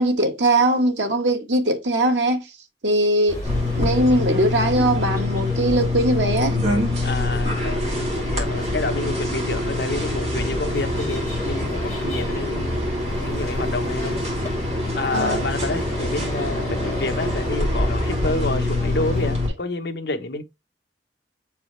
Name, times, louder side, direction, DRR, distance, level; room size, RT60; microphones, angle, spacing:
voice 1, 0.0-2.4 2.8-3.4 3.7-6.6 15.1-15.5, right 1 dB, 85° right, 1.5 m, -20 dB
sound 1, 3.3-19.3, equal, 15° left, 3.0 m, -33 dB
sound 2, 3.4-19.5, left 2 dB, 40° right, 2.9 m, -25 dB
voice 2, 7.0-12.8 13.2-14.3 14.9-20.4, left 2 dB, 65° left, 0.9 m, -29 dB
7.1 x 4.8 x 3.2 m
head